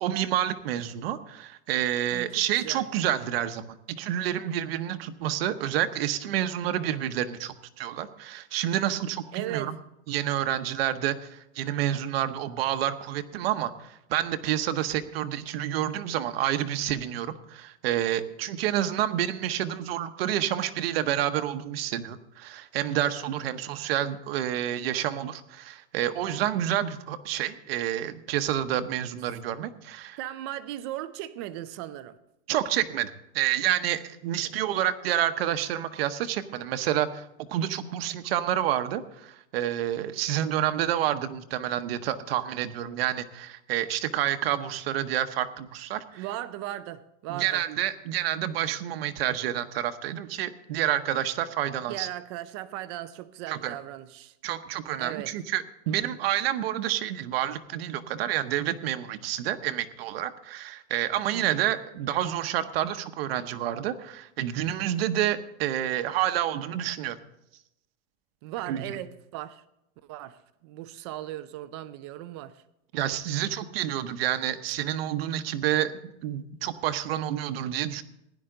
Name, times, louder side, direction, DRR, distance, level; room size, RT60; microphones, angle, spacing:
voice 1, 0.0-9.7 10.1-30.2 32.5-46.2 47.3-52.1 53.5-53.8 54.4-67.2 68.7-69.0 72.9-78.0, right 11 dB, 60° right, 1.0 m, -29 dB
voice 2, 9.3-9.7 30.2-32.2 46.1-47.6 51.9-54.3 55.0-55.3 61.3-61.6 68.4-69.6 70.1-72.6, right 13 dB, 25° right, 0.3 m, -37 dB
16.0 x 10.5 x 3.8 m
supercardioid pair, 170°, 33 cm